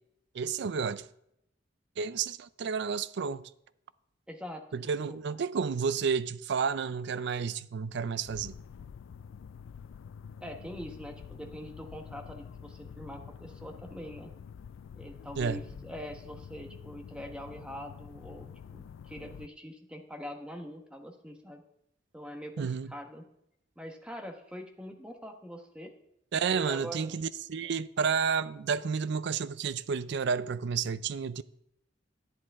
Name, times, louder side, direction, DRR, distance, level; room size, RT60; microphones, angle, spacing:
voice 1, 0.3-1.1 2.0-3.4 4.7-8.6 15.4-15.6 22.6-22.9 26.3-31.4, right 6 dB, 65° right, 0.4 m, -31 dB
voice 2, 4.3-4.8 5.1-5.2 10.4-14.3 14.9-21.6 22.1-23.2 23.8-25.9 26.5-27.2, equal, 5° right, 1.1 m, -43 dB
sound 1, 8.2-19.5, left 7 dB, 85° left, 0.3 m, -47 dB
10.5 x 9.6 x 3.6 m
head